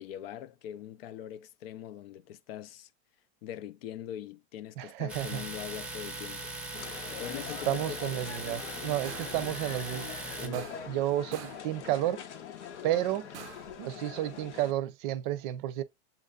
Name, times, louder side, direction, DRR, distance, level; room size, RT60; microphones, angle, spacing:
voice 1, 0.0-2.9 3.4-6.5 7.2-8.0 9.3-9.5 10.3-10.7, left 10 dB, 60° left, 0.5 m, -42 dB
voice 2, 4.8-5.4 7.6-10.2 10.4-12.2 12.8-13.3 13.8-15.8, right 13 dB, 45° right, 0.6 m, -31 dB
Domestic sounds home sounds, 5.1-10.5, right 2 dB, 5° right, 0.7 m, -40 dB
sound 1, 6.7-14.7, left 8 dB, 85° left, 1.0 m, -43 dB
sound 2, 9.0-9.5 10.5-11.0 11.3-11.7 13.3-13.8, right 12 dB, 85° right, 0.5 m, -46 dB
7.2 x 2.6 x 2.3 m
supercardioid pair, 135°, 34 cm